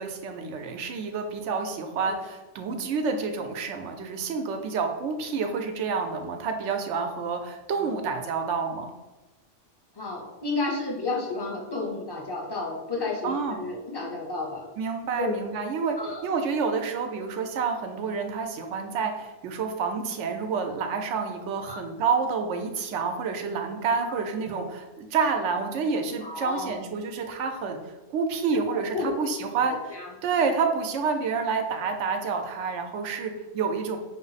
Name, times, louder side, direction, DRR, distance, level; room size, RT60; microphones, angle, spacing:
voice 1, 0.0-8.9 13.2-13.6 14.8-16.0 16.2-27.8 28.1-29.7 30.2-34.0, right 5 dB, 80° right, 5 dB, 0.9 m, -28 dB
voice 2, 9.9-14.7 15.2-15.4 16.0-16.3 21.6-21.8 24.1-24.2 26.2-26.8 28.7-29.2 29.9-30.1, left 3 dB, 25° left, -1 dB, 0.7 m, -32 dB
5.8 x 2.0 x 3.9 m, 1.1 s
omnidirectional pair, 1.2 m